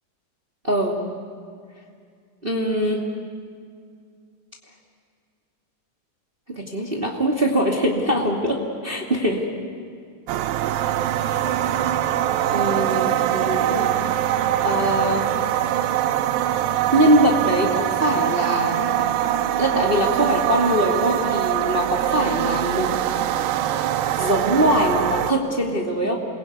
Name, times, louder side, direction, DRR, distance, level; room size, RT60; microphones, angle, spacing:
voice 1, 0.6-1.0 2.4-3.0 6.5-9.4 11.2-11.4 12.5-14.0 14.6-15.3 16.9-18.8 19.6-22.9 24.1-26.1, equal, 15° right, -1 dB, 2.3 m, -22 dB
sound 1, 10.3-25.3, right 11 dB, 85° right, 2.6 m, -23 dB
28.0 x 22.5 x 9.4 m, 2.2 s
omnidirectional pair, 4.1 m